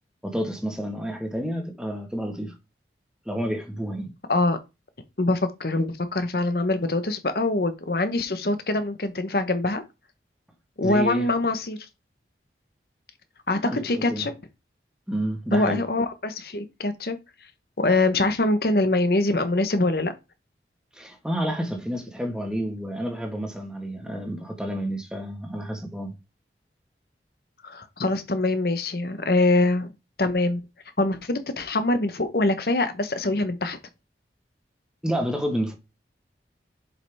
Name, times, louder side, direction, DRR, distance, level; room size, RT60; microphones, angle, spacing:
voice 1, 0.2-2.5 3.2-4.1 10.8-11.3 13.6-14.3 15.1-15.8 20.9-26.1 35.0-35.7, equal, 5° right, 1.3 m, -29 dB
voice 2, 5.2-9.8 10.8-11.8 13.5-14.3 15.5-17.2 17.8-20.1 27.6-29.9 30.2-30.6 31.0-33.8, left 2 dB, 60° left, 0.9 m, -24 dB
7.5 x 5.3 x 3.4 m
head